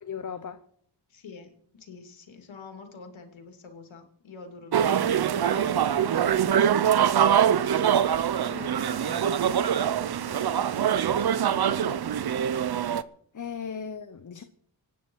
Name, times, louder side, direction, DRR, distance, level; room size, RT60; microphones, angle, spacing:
voice 1, 0.0-0.6 13.3-14.4, left 7 dB, 40° left, 0.9 m, -36 dB
voice 2, 1.1-7.2 8.5-12.0, left 4 dB, 80° left, 2.7 m, -47 dB
sound 1, 4.7-13.0, right 9 dB, 55° right, 0.7 m, -24 dB
25.5 x 9.5 x 4.7 m
wide cardioid pair, 105°, 46 cm